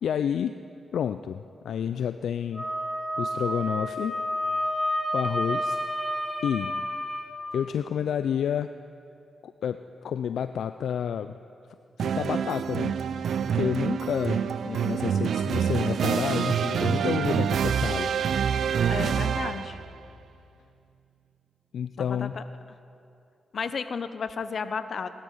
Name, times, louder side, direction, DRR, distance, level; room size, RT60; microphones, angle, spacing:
voice 1, 0.0-0.5 0.9-2.7 3.2-4.2 5.1-5.8 6.4-6.7 7.5-8.7 9.4-11.3 12.0-13.0 13.4-18.1 21.7-22.3, left 8 dB, 80° left, 10 dB, 0.3 m, -29 dB
Wind instrument woodwind instrument, 2.5-7.3, equal, 5° left, 2.0 m, -30 dB
sound 1, 12.0-19.9, right 7 dB, 75° right, 0.4 m, -26 dB
voice 2, 18.9-19.8 22.0-22.4 23.5-25.1, left 5 dB, 60° left, 12 dB, 0.8 m, -33 dB
19.0 x 12.5 x 5.6 m, 2.6 s
cardioid pair, 65°, 0 cm